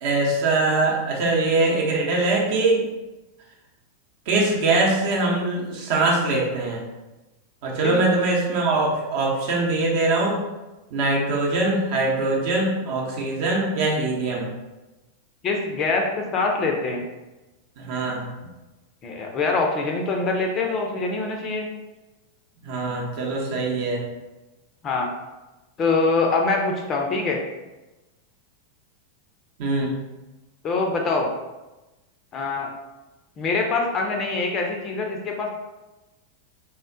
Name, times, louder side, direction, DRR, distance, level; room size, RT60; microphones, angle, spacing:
voice 1, 0.0-2.9 4.3-6.8 7.6-10.4 10.9-14.4 17.8-18.2 22.6-24.0 29.6-29.9, right 2 dB, 50° right, -2 dB, 0.7 m, -22 dB
voice 2, 15.4-17.1 19.0-21.7 24.8-25.1 25.8-27.4 30.6-31.3 32.3-32.7 33.4-35.5, left 3 dB, 30° left, 1 dB, 0.4 m, -24 dB
3.4 x 2.1 x 2.6 m, 1.1 s
figure-of-eight pair, 90°, 0 cm